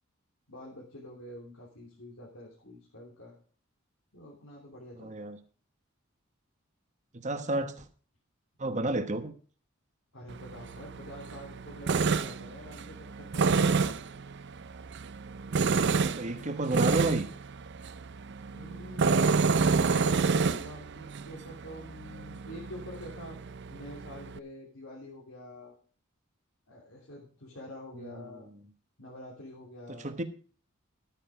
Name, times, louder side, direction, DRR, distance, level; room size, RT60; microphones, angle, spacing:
voice 1, 0.5-3.4 4.1-5.3 10.1-14.0 18.5-23.4 23.7-25.8 26.7-28.5 29.0-30.1, left 1 dB, 75° left, -4 dB, 3.2 m, -46 dB
voice 2, 5.0-5.4 7.1-7.9 8.6-9.3 15.9-17.3 28.0-28.3 30.0-30.2, right 2 dB, 35° right, 8 dB, 1.2 m, -31 dB
Tools, 10.3-24.4, right 4 dB, 55° right, 0.6 m, -29 dB
12.0 x 9.2 x 4.8 m, 0.41 s
head